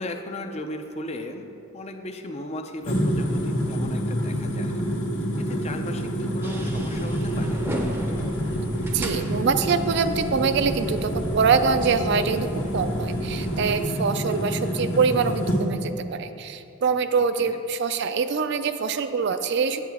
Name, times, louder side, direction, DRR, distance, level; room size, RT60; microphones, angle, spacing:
voice 1, 0.0-4.8 5.4-7.6 17.4-17.6, left 1 dB, 30° left, 6 dB, 0.5 m, -36 dB
sound 1, 2.8-15.6, equal, 65° left, 1.5 m, -27 dB
sound 2, 6.4-13.8, equal, 10° right, 0.6 m, -36 dB
voice 2, 8.9-12.5 12.7-19.9, right 5 dB, 55° right, 10 dB, 0.4 m, -24 dB
8.6 x 8.3 x 3.5 m, 2.7 s
head